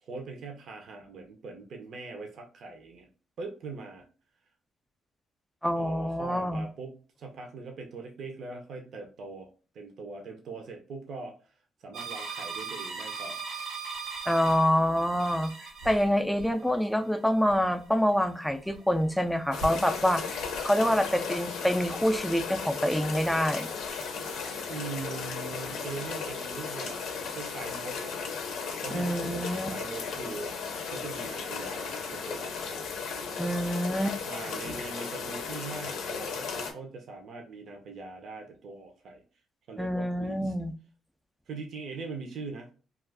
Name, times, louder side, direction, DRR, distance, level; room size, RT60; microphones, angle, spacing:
voice 1, 0.0-3.1 3.4-4.1 5.7-6.9 7.2-9.5 9.7-11.3 11.8-13.4 24.7-27.0 27.3-28.3 28.8-32.9 34.2-39.2 39.7-40.5 41.5-42.7, right 3 dB, 65° right, 0.6 m, -41 dB
voice 2, 5.6-6.7 14.3-15.5 15.8-23.7 28.9-29.7 33.4-34.2 39.8-40.7, equal, ahead, 0.4 m, -26 dB
sound 1, 11.9-22.4 22.7-24.5, right 4 dB, 90° right, 1.1 m, -42 dB
sound 2, 19.5-36.7, left 5 dB, 80° left, 0.6 m, -36 dB
2.4 x 2.3 x 3.3 m
cardioid pair, 90°, 0 cm